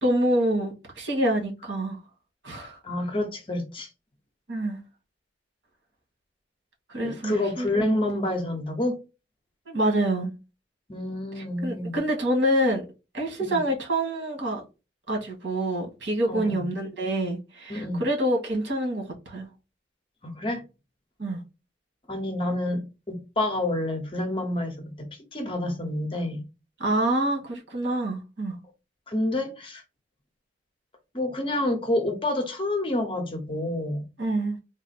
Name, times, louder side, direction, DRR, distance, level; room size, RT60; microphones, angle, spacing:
voice 1, 0.0-2.0 2.4-2.8 4.5-4.8 6.9-8.0 9.7-10.3 11.4-12.8 13.1-14.6 15.1-19.5 21.2-21.4 26.8-28.5 34.2-34.6, right 1 dB, 85° right, 1.6 m, -26 dB
voice 2, 2.8-3.9 7.0-9.0 10.9-12.0 13.4-13.6 16.3-16.7 17.7-18.1 20.2-20.6 22.1-26.4 29.1-29.8 31.1-34.1, left 1 dB, 30° left, 0.8 m, -28 dB
3.9 x 2.1 x 4.1 m
head